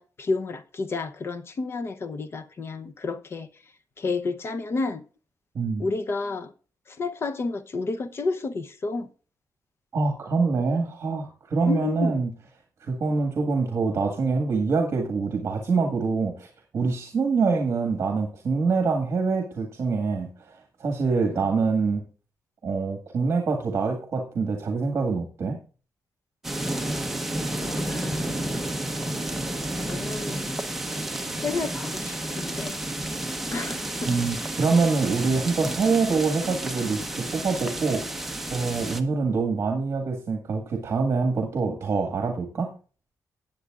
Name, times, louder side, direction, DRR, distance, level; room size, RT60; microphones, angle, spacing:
voice 1, 0.0-3.5 4.0-5.0 5.8-6.5 6.9-9.1 11.6-12.2 21.3-21.5 27.6-28.5 29.8-30.6 31.4-32.8 33.5-34.2, left 3 dB, 40° left, 0.8 m, -31 dB
voice 2, 9.9-12.3 12.8-16.5 16.7-20.5 20.8-22.0 22.6-25.6 34.1-42.7, right 4 dB, 45° right, 1.8 m, -25 dB
sound 1, 26.4-39.0, right 1 dB, 5° right, 0.9 m, -31 dB
18.5 x 7.9 x 2.4 m
wide cardioid pair, 160°, 6 cm